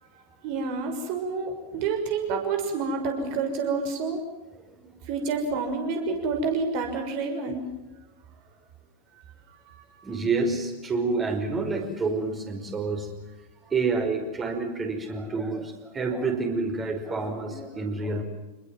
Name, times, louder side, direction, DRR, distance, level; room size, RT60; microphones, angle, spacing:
voice 1, 0.1-4.2 5.1-7.7 9.5-10.1, right 4 dB, 45° right, 5 dB, 6.2 m, -29 dB
voice 2, 10.0-13.1 13.7-18.2, right 3 dB, 20° right, 4 dB, 5.3 m, -28 dB
28.0 x 21.5 x 7.6 m, 1.1 s
figure-of-eight pair, 90°, 0 cm